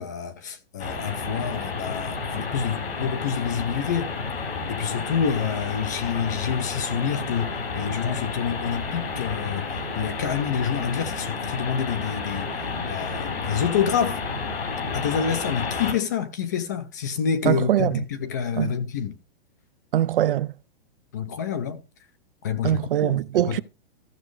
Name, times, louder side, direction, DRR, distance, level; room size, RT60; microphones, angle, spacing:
voice 1, 0.0-4.1 4.7-14.2 14.9-19.2 21.1-21.8 22.4-23.2 23.5-23.6, left 7 dB, 20° left, 0.4 m, -28 dB
sound 1, 0.8-15.9, left 4 dB, 90° left, 3.8 m, -31 dB
voice 2, 17.5-18.0 18.6-18.7 19.9-20.5 22.6-23.6, right 12 dB, 60° right, 0.5 m, -22 dB
14.5 x 6.2 x 3.1 m
hypercardioid pair, 170°, 30 cm